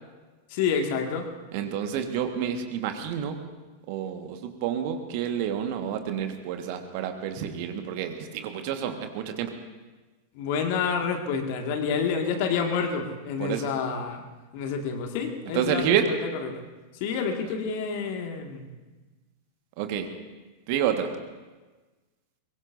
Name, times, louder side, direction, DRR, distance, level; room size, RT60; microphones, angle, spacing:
voice 1, 0.5-1.3 10.3-14.2 14.5-16.6 17.0-18.7, left 6 dB, 50° left, 3 dB, 2.0 m, -28 dB
voice 2, 1.5-3.3 3.9-9.5 13.4-13.7 15.5-16.1 17.5-17.6 19.8-20.1 20.7-21.1, right 9 dB, 45° right, 6 dB, 1.6 m, -29 dB
22.5 x 22.0 x 2.7 m, 1.2 s
figure-of-eight pair, 90°, 0 cm